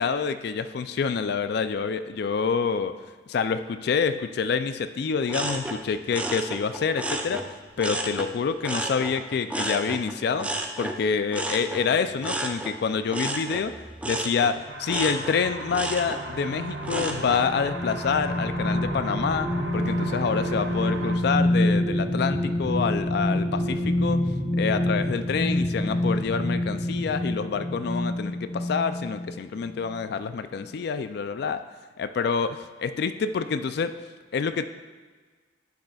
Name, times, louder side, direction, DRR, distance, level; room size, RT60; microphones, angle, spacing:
voice 1, 0.0-2.9 3.3-7.5 7.8-10.5 10.8-13.7 14.0-24.2 24.6-31.6 32.0-33.9 34.3-34.7, left 5 dB, 60° left, 11 dB, 0.3 m, -27 dB
sound 1, 5.3-8.3 8.6-17.5 17.9-18.4, right 1 dB, 10° right, 0.4 m, -32 dB
sound 2, 14.7-21.2, right 2 dB, 70° right, 0.7 m, -36 dB
sound 3, 16.6-29.4 29.8-30.0, left 1 dB, 25° left, 0.7 m, -27 dB
9.8 x 6.5 x 2.3 m, 1.4 s
head